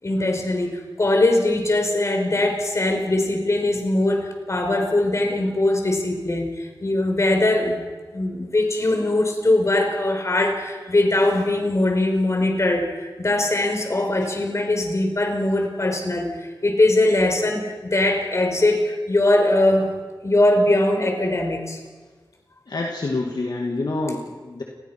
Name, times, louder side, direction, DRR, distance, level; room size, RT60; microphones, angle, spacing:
voice 1, 0.0-7.9 8.1-19.9 20.2-21.8, left 1 dB, 40° left, 4 dB, 5.0 m, -21 dB
voice 2, 22.7-24.6, left 2 dB, 60° left, 1 dB, 2.4 m, -27 dB
29.5 x 20.5 x 6.1 m, 1.4 s
wide cardioid pair, 110°, 8 cm